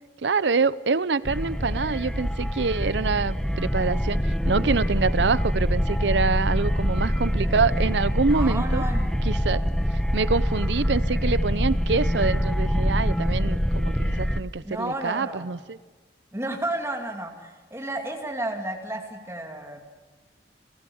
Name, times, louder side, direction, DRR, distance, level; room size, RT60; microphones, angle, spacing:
voice 1, 0.2-8.8 9.3-9.6 10.1-15.8, right 4 dB, 85° right, 17 dB, 0.7 m, -26 dB
sound 1, 1.3-14.4, equal, 5° left, 0.8 m, -25 dB
voice 2, 8.3-9.1 14.6-15.5 16.3-19.8, right 1 dB, 15° right, 3 dB, 2.7 m, -32 dB
29.5 x 14.5 x 7.2 m, 1.4 s
head